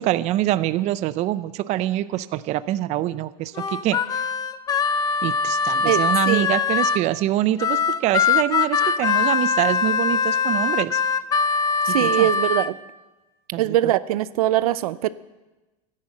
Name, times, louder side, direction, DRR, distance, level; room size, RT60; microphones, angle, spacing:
voice 1, 0.0-4.0 5.2-11.0 11.9-12.3 13.5-13.9, right 14 dB, 40° right, 15 dB, 0.5 m, -25 dB
Harmonica, 3.6-7.0 7.6-12.7, left 5 dB, 20° left, 0.5 m, -22 dB
voice 2, 5.8-6.5 11.8-12.8 13.6-15.1, right 14 dB, 85° right, 16 dB, 0.6 m, -22 dB
12.5 x 10.5 x 7.7 m, 1.1 s
supercardioid pair, 140°, 18 cm